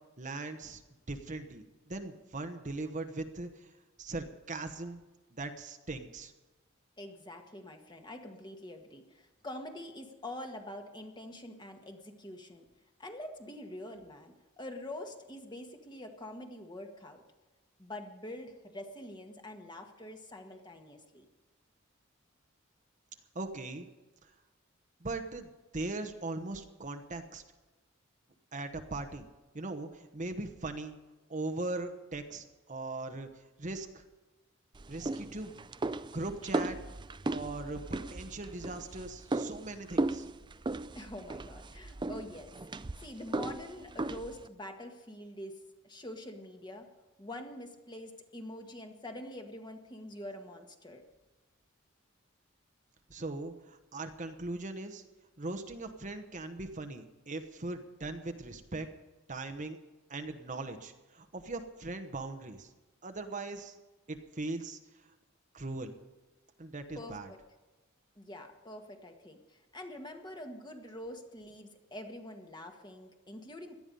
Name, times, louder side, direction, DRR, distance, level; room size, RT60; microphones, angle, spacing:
voice 1, 0.2-0.8 1.1-3.7 4.0-5.0 5.3-6.3 23.3-23.9 25.0-27.4 28.5-29.3 29.5-31.0 31.3-33.3 33.6-34.0 34.9-35.5 36.1-36.8 37.3-40.3 53.1-55.0 55.4-58.9 59.3-59.8 60.1-62.7 63.0-63.8 64.1-64.8 65.5-65.9 66.6-67.3, right 2 dB, 40° right, 7 dB, 1.1 m, -39 dB
voice 2, 7.0-12.7 13.0-17.2 17.8-21.3 40.9-46.9 47.2-51.0 67.0-67.4 68.2-73.7, left 1 dB, 20° left, 4 dB, 1.7 m, -45 dB
sound 1, 34.7-44.5, right 2 dB, 20° right, 0.5 m, -37 dB
18.0 x 12.0 x 5.4 m, 1.1 s
head